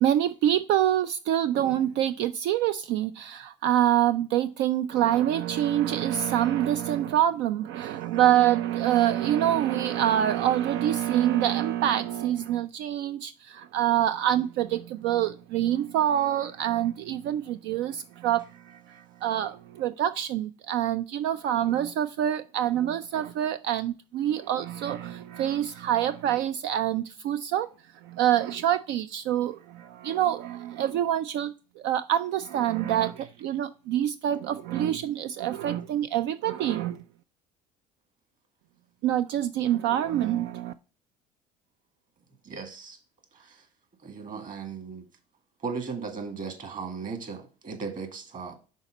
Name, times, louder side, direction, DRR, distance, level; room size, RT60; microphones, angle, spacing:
voice 1, 0.0-27.7 28.0-37.0 39.0-40.7, right 11 dB, 60° right, 0.4 m, -26 dB
voice 2, 42.4-43.0 43.3-43.7 44.0-45.1 45.6-48.5, right 5 dB, 40° right, 1.8 m, -37 dB
5.5 x 4.1 x 5.1 m
hypercardioid pair, 70°, 20 cm